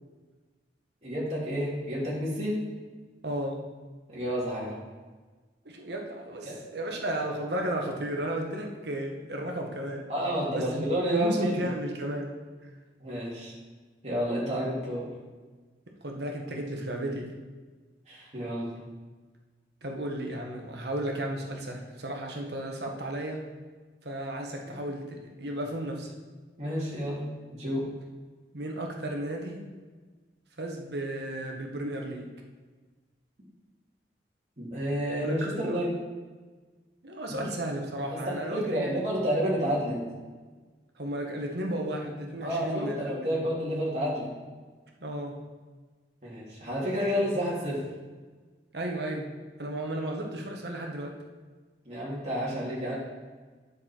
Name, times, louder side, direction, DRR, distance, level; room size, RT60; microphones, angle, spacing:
voice 1, 1.0-2.6 4.1-4.8 6.4-6.6 10.1-11.6 13.0-13.5 14.0-15.1 18.1-18.8 24.6-24.8 26.6-27.8 34.6-35.9 37.3-37.4 38.1-40.0 42.4-44.3 46.2-47.8 51.8-53.0, equal, 40° right, -6 dB, 2.9 m, -30 dB
voice 2, 3.2-3.6 5.6-10.1 10.5-10.8 11.1-12.3 16.0-17.3 19.8-23.4 24.0-26.1 28.5-29.7 30.6-32.3 35.2-35.9 37.0-38.9 41.0-43.5 45.0-45.4 48.7-49.3 49.6-51.1, right 1 dB, 70° right, 1 dB, 1.4 m, -34 dB
9.7 x 6.7 x 4.5 m, 1.4 s
head